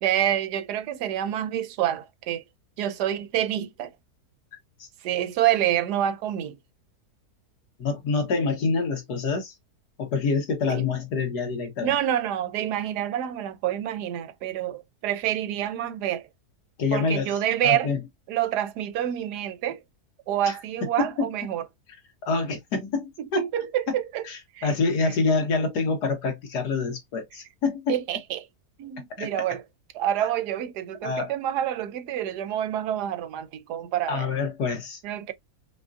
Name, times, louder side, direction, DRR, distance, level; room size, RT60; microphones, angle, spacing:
voice 1, 0.0-2.4 2.8-3.9 5.0-6.6 10.7-10.8 11.8-16.3 16.9-17.9 18.3-19.8 20.3-21.6 23.3-24.2 24.5-24.7 27.9-28.5 28.8-29.6 29.9-34.3 35.0-35.3, right 11 dB, 85° right, 1.2 m, -27 dB
voice 2, 7.8-9.5 10.0-11.9 16.8-17.4 17.6-18.0 20.5-20.6 21.0-21.3 22.2-23.5 24.2-27.9 29.2-29.3 31.0-31.3 34.1-35.0, left 4 dB, 85° left, 1.8 m, -26 dB
5.2 x 2.4 x 2.5 m
omnidirectional pair, 1.7 m